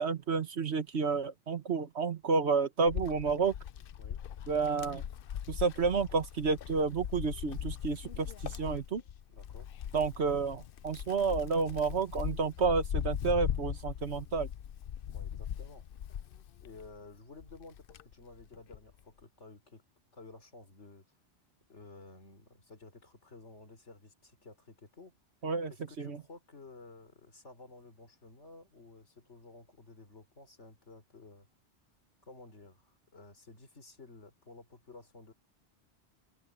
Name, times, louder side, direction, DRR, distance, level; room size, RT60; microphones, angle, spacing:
voice 1, 0.0-3.5 4.5-5.0 5.5-9.0 9.9-14.5 25.4-25.7 26.0-26.2, right 4 dB, 70° right, 1.6 m, -30 dB
Wind, 2.9-17.0 17.4-18.9, left 9 dB, 60° left, 0.7 m, -40 dB
voice 2, 9.3-9.7 15.0-15.9 16.6-19.8 20.1-21.0 21.7-25.2 25.7-31.5 32.2-35.3, left 3 dB, 85° left, 4.0 m, -53 dB
omnidirectional pair, 1.2 m